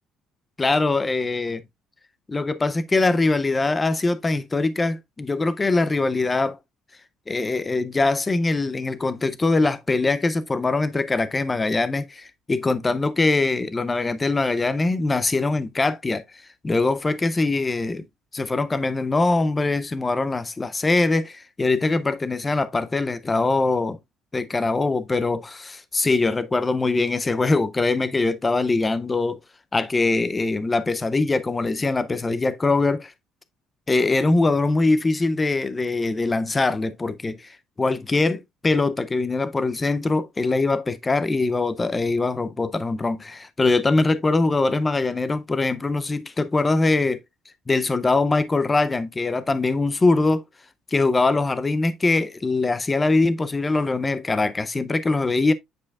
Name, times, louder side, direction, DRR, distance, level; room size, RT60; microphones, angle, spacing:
voice 1, 0.6-1.6 2.3-6.6 7.3-16.2 16.6-18.1 18.3-24.0 24.3-29.4 29.7-33.1 33.9-47.2 47.7-50.4 50.9-55.5, left 3 dB, 15° left, 0.5 m, -22 dB
8.6 x 5.0 x 2.3 m
cardioid pair, 155°, 0 cm